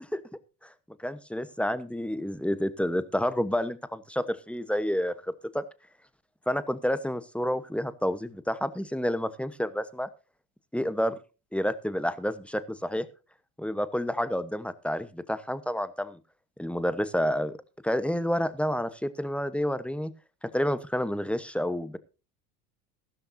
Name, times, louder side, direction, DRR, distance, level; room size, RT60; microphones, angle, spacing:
voice 1, 1.0-5.1 5.5-5.6 6.5-10.1 10.7-11.2 11.5-13.1 13.6-16.2 16.6-17.5 17.8-20.1 20.4-22.0, equal, ahead, 14 dB, 1.1 m, -29 dB
15.0 x 13.0 x 2.7 m, 0.31 s
hypercardioid pair, 80°, 49 cm